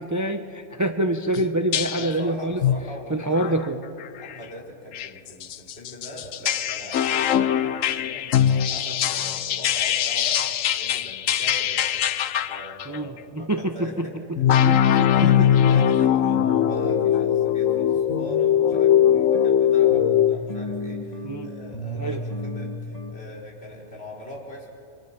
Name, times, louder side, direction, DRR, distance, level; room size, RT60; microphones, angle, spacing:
voice 1, 0.0-2.6 3.1-3.8 12.9-14.4 14.6-15.3 21.2-21.5 21.9-22.2, right 1 dB, 15° right, 7 dB, 0.7 m, -26 dB
sound 1, 1.4-1.5 1.7-2.2 2.6-2.9 3.4-3.6 4.0-4.3 4.9-13.0 14.4-20.4, left 10 dB, 75° left, 1.1 m, -21 dB
voice 2, 1.9-3.6 4.2-14.1 14.6-24.7, left 1 dB, 50° left, -3 dB, 4.5 m, -41 dB
sound 2, 16.3-23.1, equal, 30° left, 1.9 m, -35 dB
28.0 x 25.5 x 5.9 m, 2.7 s
omnidirectional pair, 1.3 m